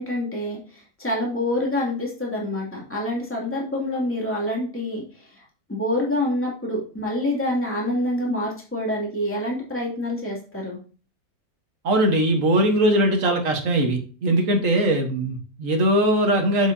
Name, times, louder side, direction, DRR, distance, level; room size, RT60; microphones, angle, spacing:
voice 1, 0.0-5.4 5.7-10.8, left 1 dB, 5° left, -3 dB, 2.5 m, -27 dB
voice 2, 11.8-16.7, right 1 dB, 50° right, 4 dB, 1.7 m, -20 dB
8.4 x 7.3 x 2.8 m, 0.38 s
omnidirectional pair, 1.7 m